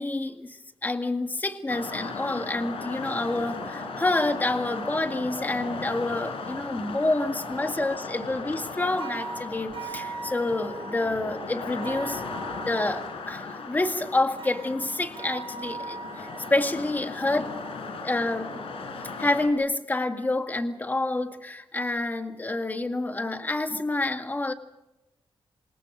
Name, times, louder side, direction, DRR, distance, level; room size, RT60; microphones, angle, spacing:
voice 1, 0.0-12.2 12.6-17.6 18.0-18.6 19.2-24.5, left 2 dB, 20° left, 6 dB, 1.9 m, -28 dB
sound 1, 1.7-19.5, left 3 dB, 85° left, 5.1 m, -37 dB
sound 2, 9.0-11.1 11.8-13.1 14.4-16.6, right 4 dB, 70° right, 4.4 m, -39 dB
27.5 x 26.5 x 5.1 m, 0.93 s
wide cardioid pair, 150°, 9 cm